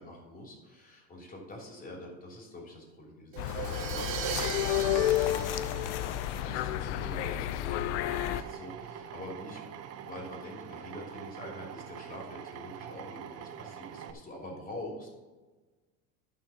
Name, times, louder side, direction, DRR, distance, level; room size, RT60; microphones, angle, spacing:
voice 1, 0.0-15.1, left 1 dB, 25° left, -1 dB, 3.2 m, -45 dB
Crash cymbal, 3.3-7.1, right 9 dB, 65° right, 1.1 m, -38 dB
sound 1, 3.4-8.4, left 12 dB, 85° left, 0.6 m, -31 dB
Drill, 8.1-14.1, right 9 dB, 45° right, 0.8 m, -44 dB
11.5 x 5.7 x 5.7 m, 1.3 s
supercardioid pair, 120°, 33 cm